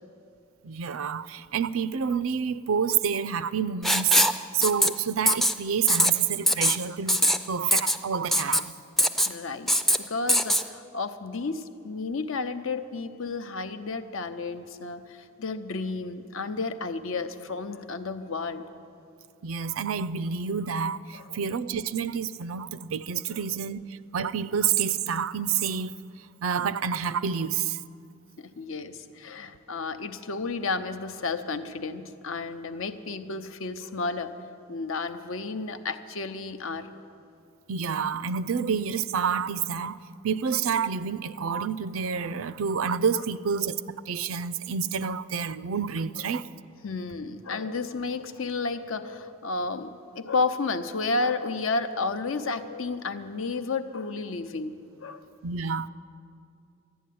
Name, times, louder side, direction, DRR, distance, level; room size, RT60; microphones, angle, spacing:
voice 1, 0.6-8.7 19.4-26.0 26.4-27.8 37.7-40.0 40.2-46.5 55.4-55.9, right 7 dB, 85° right, 0.5 m, -28 dB
Writing, 3.8-4.4 4.6-4.9 5.3-5.5 5.9-6.1 6.5-6.8 7.1-7.4 7.7-8.0 8.3-8.6 9.0-9.3 9.7-10.0 10.3-10.6, equal, ahead, 0.3 m, -21 dB
voice 2, 9.3-18.6 21.1-21.4 23.3-23.4 28.4-34.3 34.7-36.9 46.8-54.7 55.0-55.2, left 3 dB, 75° left, 0.8 m, -32 dB
12.0 x 11.0 x 9.3 m
head